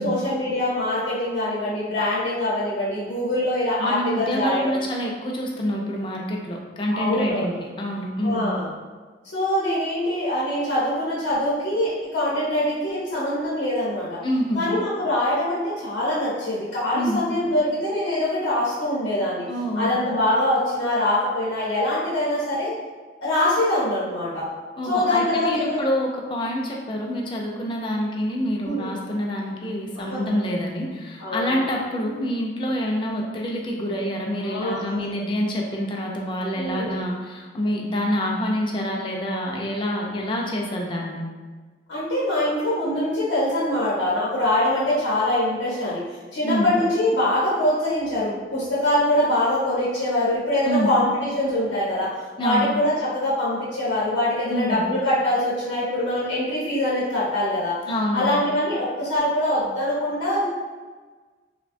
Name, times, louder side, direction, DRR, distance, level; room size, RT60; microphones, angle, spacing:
voice 1, 0.0-4.8 6.9-7.5 8.2-8.7 9.3-14.2 14.5-19.4 19.7-22.7 23.2-24.4 24.9-25.8 28.6-28.9 30.1-30.2 31.2-31.6 34.4-34.8 36.6-37.0 41.9-46.0 46.3-52.1 52.4-57.8 58.1-60.5, left 1 dB, 85° left, -8 dB, 0.7 m, -23 dB
voice 2, 3.8-8.5 14.2-14.6 16.9-17.2 19.5-20.0 24.8-41.2 46.4-46.7 50.6-50.9 52.4-52.7 54.5-54.8 57.9-58.4, equal, 25° left, -1 dB, 0.3 m, -26 dB
3.2 x 2.1 x 2.5 m, 1.4 s
head